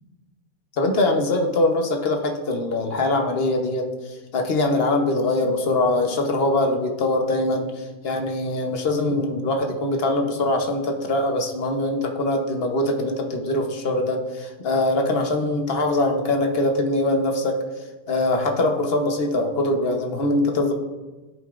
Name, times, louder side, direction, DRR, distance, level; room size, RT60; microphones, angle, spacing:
voice 1, 0.7-17.6 18.1-20.7, left 2 dB, 45° left, 3 dB, 1.0 m, -23 dB
14.5 x 5.3 x 2.5 m, 1.2 s
omnidirectional pair, 1.8 m